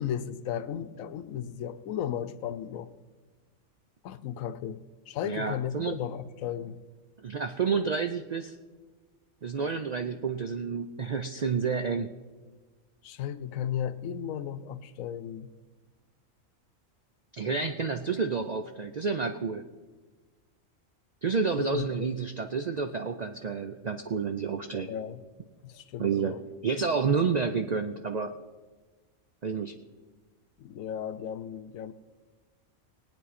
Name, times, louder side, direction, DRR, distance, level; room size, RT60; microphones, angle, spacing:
voice 1, 0.0-2.9 4.0-6.8 13.0-15.5 17.5-17.6 21.6-21.9 24.9-25.3 25.6-26.4 30.6-31.9, left 9 dB, 85° left, 12 dB, 1.0 m, -35 dB
voice 2, 5.3-6.0 7.2-8.5 9.4-12.1 17.3-19.6 21.2-24.9 26.0-26.4 26.6-28.3 29.4-29.8, right 5 dB, 65° right, 7 dB, 0.4 m, -29 dB
20.0 x 8.8 x 4.2 m, 1.3 s
omnidirectional pair, 1.4 m